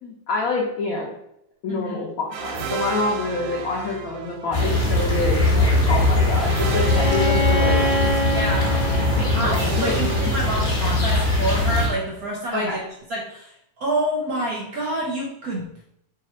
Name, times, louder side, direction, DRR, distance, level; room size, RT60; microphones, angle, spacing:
voice 1, 0.0-1.1 1.6-7.8 9.2-9.9 12.5-12.8, left 3 dB, 75° left, -2 dB, 0.8 m, -27 dB
sound 1, 2.3-11.2, right 7 dB, 85° right, 1.5 m, -32 dB
sound 2, 4.5-11.9, left 2 dB, 30° left, 1.3 m, -21 dB
Bowed string instrument, 6.8-10.6, left 2 dB, 50° left, 1.1 m, -26 dB
voice 2, 8.2-8.9 9.3-12.8 13.1-15.7, right 1 dB, 65° right, -2 dB, 0.9 m, -27 dB
4.1 x 2.4 x 4.3 m, 0.75 s
omnidirectional pair, 2.3 m